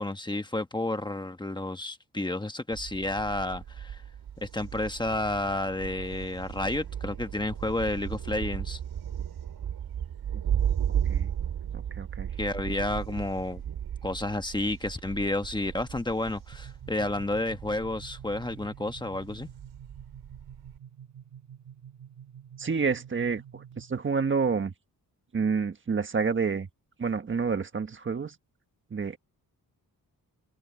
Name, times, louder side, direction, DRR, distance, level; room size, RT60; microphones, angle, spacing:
voice 1, 0.0-4.0 4.4-8.8 12.4-13.6 14.0-19.5, left 2 dB, 10° left, 1.2 m, -31 dB
Thunder, 2.7-20.8, right 9 dB, 85° right, 6.1 m, -35 dB
voice 2, 11.7-12.3 22.6-24.7 25.3-26.7 27.0-28.3 28.9-29.2, right 5 dB, 35° right, 1.4 m, -29 dB
sound 1, 16.5-24.1, right 9 dB, 50° right, 1.9 m, -49 dB
wide cardioid pair, 145°, 37 cm